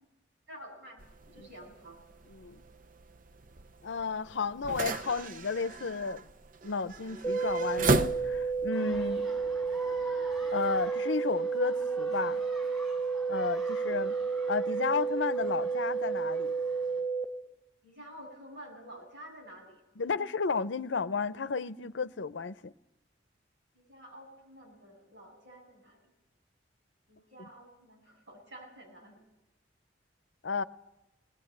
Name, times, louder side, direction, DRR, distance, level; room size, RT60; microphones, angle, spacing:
voice 1, 0.5-1.0 1.3-2.0 17.8-19.8 23.7-26.1 27.1-29.2, equal, 65° right, 7.8 m, -50 dB
sound 1, 1.0-8.7, right 3 dB, 45° right, 0.7 m, -35 dB
voice 2, 2.3-2.6 3.8-6.3 6.6-9.3 10.5-12.4 13.3-14.2 14.5-16.5 20.0-22.7 27.4-27.5 30.4-30.6, left 4 dB, 75° left, 0.7 m, -33 dB
sound 2, 7.2-17.3, right 5 dB, 20° left, 1.6 m, -31 dB
sound 3, 8.7-17.0, equal, ahead, 7.8 m, -49 dB
19.5 x 18.5 x 8.8 m
head